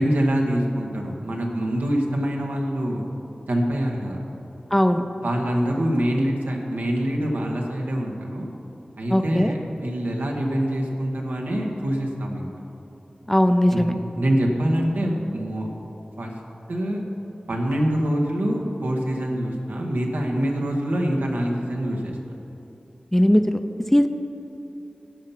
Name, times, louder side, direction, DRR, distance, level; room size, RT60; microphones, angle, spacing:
voice 1, 0.0-3.0 3.5-4.2 5.2-8.5 9.0-12.5 13.7-15.7 16.2-16.3 16.7-17.0 17.5-22.2, equal, 85° right, 0 dB, 1.4 m, -25 dB
voice 2, 4.7-5.0 9.1-9.5 13.3-13.9 23.1-24.1, equal, 10° left, 8 dB, 0.5 m, -19 dB
16.5 x 5.7 x 5.8 m, 2.9 s
wide cardioid pair, 55°, 3 cm